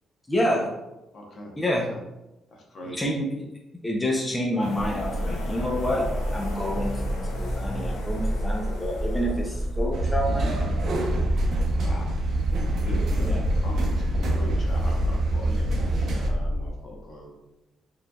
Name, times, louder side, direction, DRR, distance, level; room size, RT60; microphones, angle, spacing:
voice 1, 0.3-0.7 1.6-1.8 3.0-3.3 3.8-6.1 6.3-7.0 7.4-11.1 13.2-13.4, equal, 15° left, -1 dB, 0.6 m, -28 dB
voice 2, 1.1-2.0 2.5-3.1 11.7-12.1 12.8-13.3 13.6-17.3, equal, 50° left, -1 dB, 1.0 m, -41 dB
sound 1, 4.6-10.1, left 2 dB, 85° left, 0.8 m, -38 dB
sound 2, 4.8-16.7, equal, 10° right, 1.1 m, -30 dB
sound 3, 9.9-16.3, right 1 dB, 65° right, 0.7 m, -26 dB
4.5 x 3.3 x 2.3 m, 0.96 s
cardioid pair, 90°, 0 cm